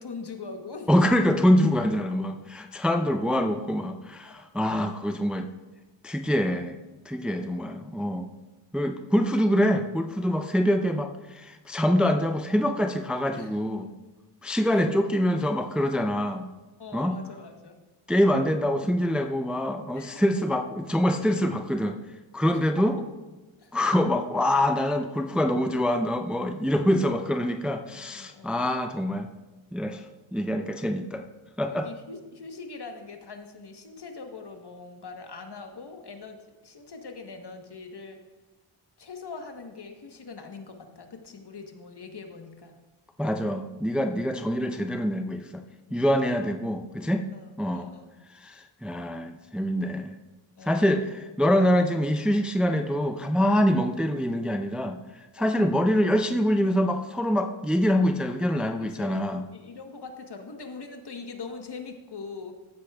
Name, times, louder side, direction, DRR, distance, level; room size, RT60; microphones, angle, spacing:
voice 1, 0.0-0.9 4.2-4.3 7.2-7.6 13.3-13.6 14.7-14.8 16.8-17.8 19.9-20.2 22.5-22.9 23.6-23.8 26.8-26.9 27.8-28.6 31.6-38.2 39.0-42.8 44.2-44.3 45.9-46.0 47.3-48.1 49.9-50.0 50.6-50.9 55.4-55.7 58.8-62.5, left 4 dB, 55° left, 5 dB, 1.2 m, -42 dB
voice 2, 0.9-5.5 6.0-6.8 7.1-8.3 8.7-13.9 14.4-16.5 16.9-17.1 18.1-22.0 22.3-22.9 23.7-29.3 29.7-30.0 30.3-31.2 31.6-31.9 43.2-45.6 45.9-47.2 47.6-47.9 48.4-50.1 50.6-55.0 55.3-59.4, equal, ahead, 6 dB, 0.5 m, -25 dB
15.0 x 7.6 x 2.3 m, 1.1 s
cardioid pair, 45°, 48 cm